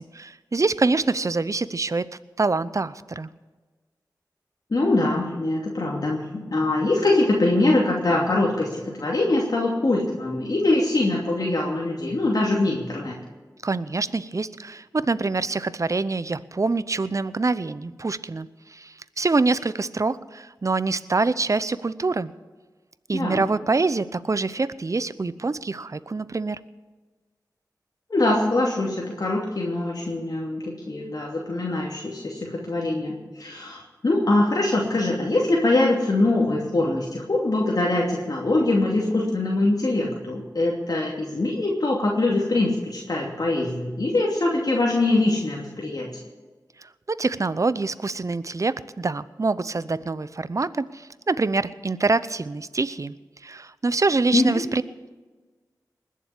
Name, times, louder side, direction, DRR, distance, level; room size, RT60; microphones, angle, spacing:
voice 1, 0.0-2.1 2.4-3.3 13.6-22.3 23.1-26.6 46.8-53.1 53.4-54.8, right 3 dB, 45° right, 16 dB, 0.7 m, -25 dB
voice 2, 4.7-13.2 23.1-23.5 28.1-46.1 54.3-54.7, left 2 dB, 60° left, -3 dB, 2.7 m, -23 dB
20.5 x 7.5 x 8.4 m, 1.3 s
cardioid pair, 45°, 7 cm